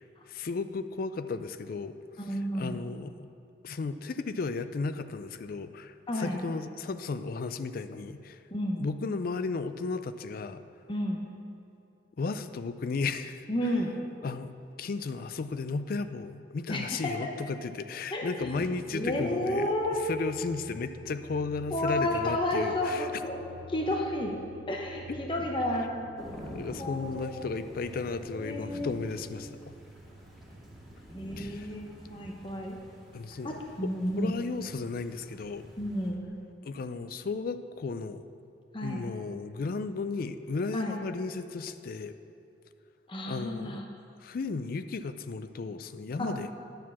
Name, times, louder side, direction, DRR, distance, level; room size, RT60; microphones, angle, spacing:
voice 1, 0.0-2.0 2.3-3.1 3.6-8.4 8.8-10.6 12.2-13.5 14.2-19.7 20.0-23.1 25.1-25.5 26.4-29.7 31.4-31.7 33.1-35.7 36.6-38.2 38.8-42.2 43.3-43.9 44.2-46.5, left 4 dB, 55° left, 11 dB, 0.4 m, -34 dB
voice 2, 2.2-2.8 6.1-6.4 8.5-8.8 10.9-11.2 13.5-13.9 16.7-17.3 18.1-18.6 18.9-20.1 21.7-23.4 23.7-24.3 24.7-26.0 26.7-27.4 28.3-28.9 31.1-32.8 33.4-34.4 35.8-36.3 38.7-39.0 40.7-40.9 43.1-43.8 46.2-46.5, left 1 dB, 30° left, 1 dB, 0.8 m, -31 dB
sound 1, 18.4-36.3, right 1 dB, 65° right, 0.6 m, -50 dB
Thunder / Rain, 26.2-36.1, equal, ahead, 2.3 m, -48 dB
10.5 x 4.6 x 7.2 m, 2.7 s
head